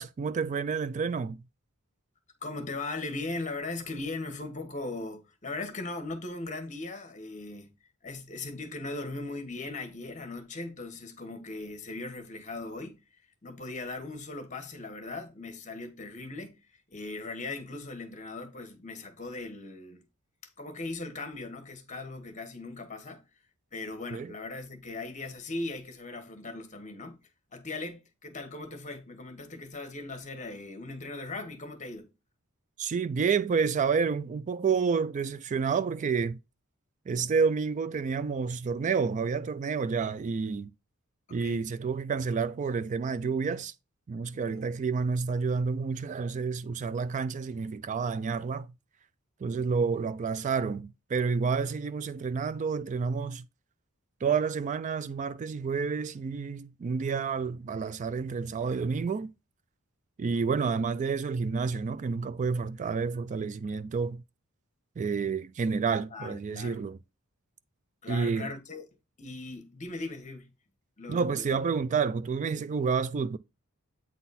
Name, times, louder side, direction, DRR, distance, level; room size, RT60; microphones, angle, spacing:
voice 1, 0.0-1.4 24.1-24.3 32.8-36.4 37.1-40.7 41.3-43.7 44.1-48.7 49.4-53.5 54.2-59.3 60.2-64.2 65.0-67.0 68.1-68.5 71.1-73.4, right 5 dB, 35° right, 0.3 m, -29 dB
voice 2, 2.4-7.7 8.0-13.0 13.4-16.6 16.9-20.0 20.6-23.2 23.7-27.2 27.5-32.1 41.4-41.7 44.3-44.7 66.1-66.8 68.0-68.8 69.2-70.5 71.0-71.6, left 2 dB, 35° left, 1.3 m, -39 dB
8.4 x 4.0 x 4.1 m
head